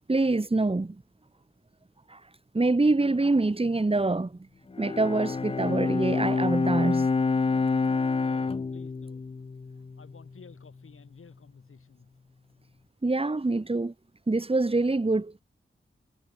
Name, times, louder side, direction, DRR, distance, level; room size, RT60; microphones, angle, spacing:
voice 1, 0.1-1.0 2.1-2.2 2.5-4.4 4.8-7.1 13.0-13.9 14.3-15.3, right 2 dB, 25° right, 2.1 m, -25 dB
Bowed string instrument, 4.7-10.2, left 4 dB, 25° left, 0.4 m, -27 dB
voice 2, 8.2-9.2 10.0-12.1, left 5 dB, 80° left, 6.6 m, -53 dB
wide cardioid pair, 115°, 21 cm